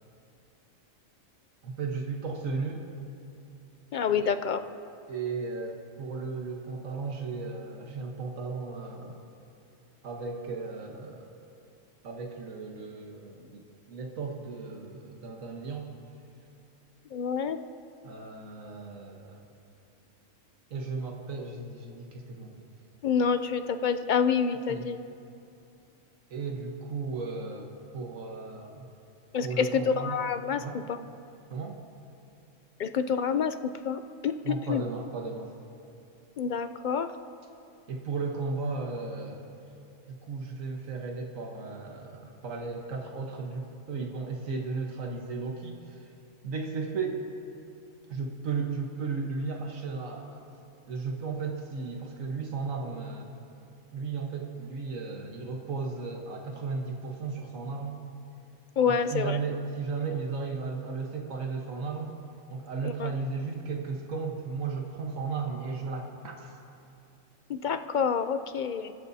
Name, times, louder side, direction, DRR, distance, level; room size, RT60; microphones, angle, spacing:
voice 1, 1.6-2.8 4.0-4.3 5.1-9.2 10.0-11.3 12.0-15.9 18.0-19.5 20.7-22.7 24.7-24.9 26.3-28.9 29.4-30.2 30.6-30.8 31.5-31.8 34.4-35.5 37.9-39.5 40.1-46.1 46.4-47.2 48.1-50.4 50.9-53.3 53.9-58.0 58.9-62.2 62.5-66.6, right 4 dB, 80° right, 1 dB, 1.6 m, -35 dB
voice 2, 3.9-4.6 17.1-17.6 23.0-25.0 29.3-31.0 32.8-33.5 33.9-34.8 36.4-37.1 58.8-59.4 62.8-63.1 67.5-68.9, left 6 dB, 60° left, 9 dB, 0.5 m, -28 dB
28.0 x 14.0 x 2.7 m, 2.6 s
omnidirectional pair, 1.4 m